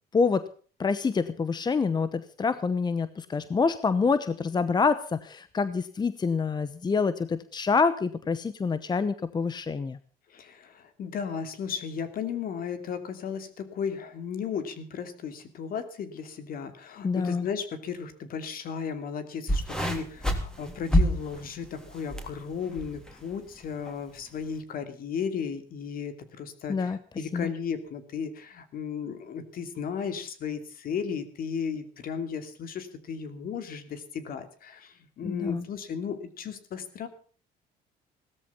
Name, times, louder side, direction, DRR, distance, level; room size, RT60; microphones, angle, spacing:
voice 1, 0.1-0.5 0.8-10.0 17.0-17.5 26.7-27.0 27.3-27.5 35.2-35.7, left 5 dB, 25° left, 14 dB, 0.9 m, -26 dB
voice 2, 10.3-37.1, left 6 dB, 60° left, 10 dB, 2.7 m, -35 dB
sound 1, 19.5-22.3 22.7-23.1 23.9-24.0, equal, 5° left, 3.3 m, -27 dB
16.5 x 13.5 x 5.6 m, 0.41 s
cardioid pair, 110°, 17 cm